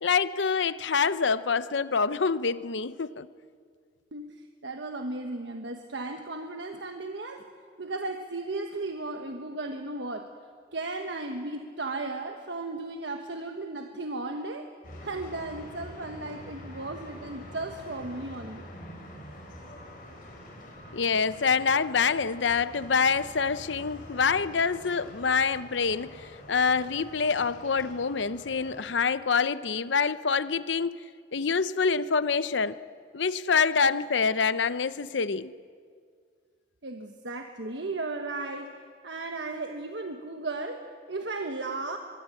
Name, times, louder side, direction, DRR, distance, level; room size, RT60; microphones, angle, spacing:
voice 1, 0.0-3.3 20.9-31.0 31.3-32.8 33.1-35.5, left 5 dB, 80° left, 14 dB, 0.7 m, -26 dB
voice 2, 4.1-7.4 7.8-10.3 10.7-14.7 15.0-18.6 36.8-38.7 39.0-42.0, right 2 dB, 70° right, 5 dB, 1.3 m, -35 dB
sound 1, 14.8-28.9, left 1 dB, 50° left, 5.4 m, -46 dB
23.5 x 22.0 x 8.4 m, 2.1 s
head